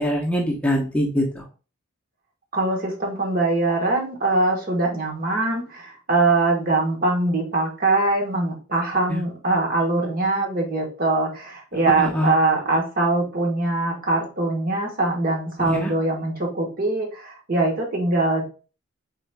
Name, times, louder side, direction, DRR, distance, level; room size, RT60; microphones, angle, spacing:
voice 1, 0.0-1.4 9.1-9.2 12.0-12.3 15.7-15.9, equal, 5° left, -2 dB, 0.7 m, -23 dB
voice 2, 2.5-18.4, right 2 dB, 40° right, 1 dB, 1.1 m, -22 dB
3.9 x 3.6 x 3.4 m, 0.35 s
head